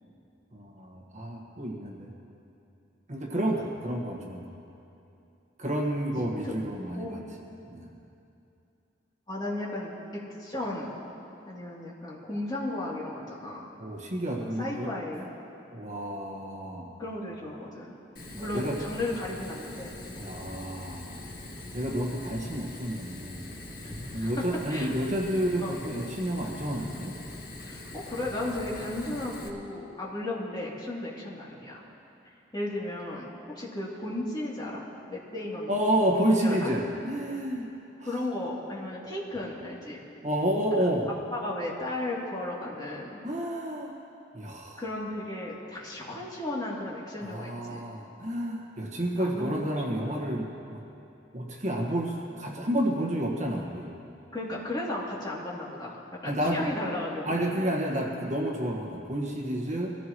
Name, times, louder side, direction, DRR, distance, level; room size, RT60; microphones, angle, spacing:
voice 1, 0.5-2.1 3.1-4.5 5.6-7.2 7.7-7.9 13.8-15.3 15.7-16.9 18.4-18.8 20.2-21.2 21.7-23.5 24.1-27.1 35.7-37.6 38.0-38.1 40.2-41.1 43.2-44.0 44.3-44.8 47.2-50.8 51.3-53.9 56.2-56.6 57.2-59.9, right 1 dB, 40° right, -1 dB, 1.5 m, -30 dB
voice 2, 6.1-6.5 6.9-7.3 9.3-9.9 10.4-11.0 11.4-13.7 14.6-15.2 17.0-17.9 18.3-20.3 23.8-24.3 24.7-24.9 25.6-25.8 27.6-31.8 32.5-34.8 35.1-35.7 36.3-36.7 38.0-40.0 41.3-43.2 44.8-47.8 49.1-50.4 54.3-57.7, left 1 dB, 25° left, -6 dB, 2.9 m, -35 dB
Fire, 18.2-29.5, left 1 dB, 50° left, 1.6 m, -43 dB
24.0 x 15.0 x 3.1 m, 2.7 s
head